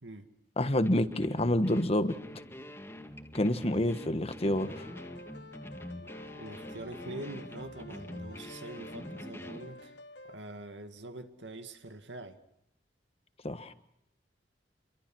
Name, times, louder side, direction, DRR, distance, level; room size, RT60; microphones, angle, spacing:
voice 1, 0.6-2.2 3.3-4.9 13.4-13.7, left 1 dB, 35° left, 11 dB, 1.4 m, -28 dB
sound 1, 0.8-9.7, left 1 dB, 15° left, 2.0 m, -45 dB
sound 2, 4.4-10.4, left 2 dB, 70° left, 1.3 m, -50 dB
voice 2, 6.3-9.9 10.3-12.4, right 1 dB, 90° right, 8 dB, 2.2 m, -44 dB
27.5 x 23.0 x 6.2 m, 0.79 s
head